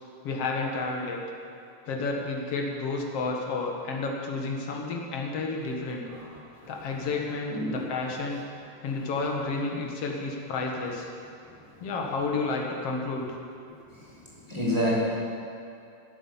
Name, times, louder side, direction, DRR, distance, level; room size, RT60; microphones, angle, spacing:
voice 1, 0.2-1.2 1.9-6.1 6.7-8.4 8.8-11.1 11.8-13.4, left 3 dB, 55° left, 0 dB, 2.0 m, -31 dB
voice 2, 7.5-7.8 14.5-15.0, equal, 10° right, -7 dB, 3.6 m, -26 dB
15.5 x 8.4 x 7.4 m, 2.5 s
omnidirectional pair, 4.2 m